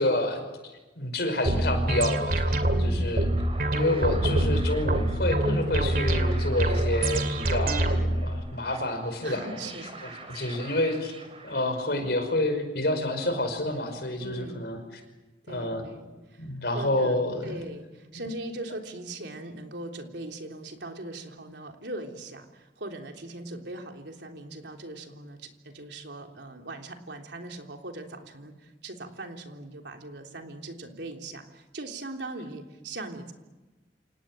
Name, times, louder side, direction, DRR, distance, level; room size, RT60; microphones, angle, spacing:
voice 1, 0.0-3.3 3.7-9.5 10.0-11.1 11.4-14.8 15.5-15.8 16.4-17.6, left 1 dB, 65° left, 7 dB, 5.4 m, -29 dB
sound 1, 1.5-8.3, right 1 dB, 55° right, 2.6 m, -25 dB
voice 2, 2.6-3.1 9.2-10.2 14.2-14.7 15.4-16.5 16.7-17.2 17.4-33.3, right 2 dB, 85° right, 3 dB, 3.4 m, -40 dB
sound 2, 2.8-12.2, right 3 dB, 35° right, 4.9 m, -45 dB
28.0 x 18.0 x 9.3 m, 1.2 s
head